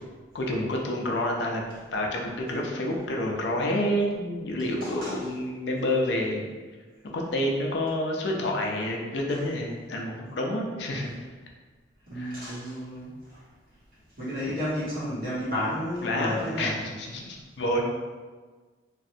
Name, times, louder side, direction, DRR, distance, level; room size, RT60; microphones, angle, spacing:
voice 1, 0.3-1.6 1.9-6.5 7.0-11.1 12.1-12.6 16.0-17.8, left 1 dB, 65° left, 0 dB, 0.4 m, -29 dB
voice 2, 4.8-5.2 9.3-9.4 12.1-13.4 14.2-16.7, equal, 50° right, -9 dB, 1.2 m, -32 dB
3.1 x 2.5 x 2.7 m, 1.4 s
head